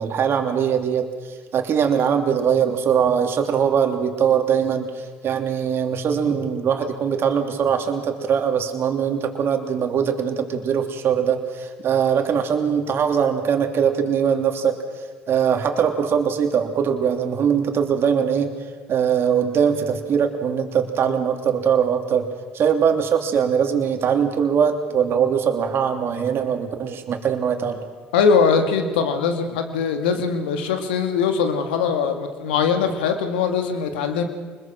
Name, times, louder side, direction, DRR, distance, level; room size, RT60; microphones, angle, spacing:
voice 1, 0.0-14.8 15.3-18.5 18.9-22.3 22.5-27.9, right 7 dB, 50° right, 5 dB, 3.0 m, -21 dB
voice 2, 28.1-34.2, left 6 dB, 85° left, 7 dB, 2.1 m, -21 dB
24.5 x 21.0 x 6.2 m, 1.4 s
hypercardioid pair, 70°, 5 cm